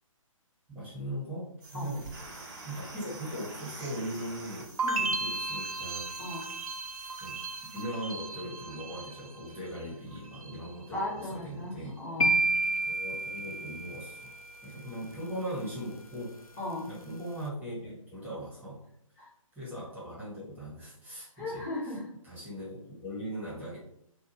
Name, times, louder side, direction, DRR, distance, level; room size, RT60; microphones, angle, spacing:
voice 1, 0.7-2.1 2.6-6.1 7.2-11.9 12.8-14.3 14.6-16.4 16.9-18.8 19.5-21.7 22.3-23.8, equal, 10° right, -9 dB, 1.3 m, -39 dB
sound 1, 1.6-7.8, right 2 dB, 35° right, 0.8 m, -47 dB
voice 2, 4.8-5.1 6.2-6.5 10.9-12.3 16.6-16.9 19.2-19.3 21.3-22.1, left 1 dB, 30° left, -6 dB, 1.0 m, -36 dB
sound 2, 4.8-9.8 10.1-10.8, right 3 dB, 85° right, 0.4 m, -36 dB
sound 3, 12.2-14.3, right 2 dB, 85° left, 0.5 m, -28 dB
2.6 x 2.4 x 3.0 m, 0.73 s
figure-of-eight pair, 140°, 18 cm